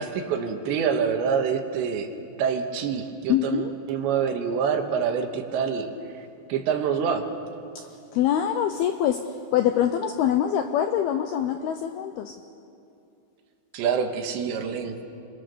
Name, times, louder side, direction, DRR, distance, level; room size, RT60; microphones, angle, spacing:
voice 1, 0.0-2.1 2.4-7.3 13.7-15.0, right 6 dB, 75° right, 5 dB, 3.5 m, -26 dB
voice 2, 3.3-3.7 8.1-12.4, left 10 dB, 80° left, 7 dB, 2.2 m, -24 dB
29.5 x 23.0 x 6.9 m, 2.6 s
omnidirectional pair, 5.5 m